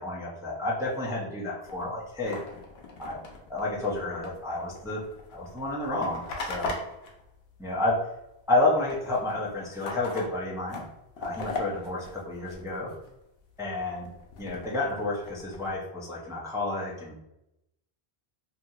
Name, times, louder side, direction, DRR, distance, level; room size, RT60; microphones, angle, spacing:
voice 1, 0.0-2.4 3.0-3.2 3.5-5.0 5.3-6.7 7.6-8.1 8.5-10.8 11.2-12.9 13.6-14.1 14.4-17.2, left 2 dB, 5° right, -5 dB, 0.3 m, -30 dB
sound 1, 1.6-8.2 8.5-13.1 13.5-15.8, left 3 dB, 80° left, 0.9 m, -40 dB
2.7 x 2.7 x 2.3 m, 0.89 s
omnidirectional pair, 1.1 m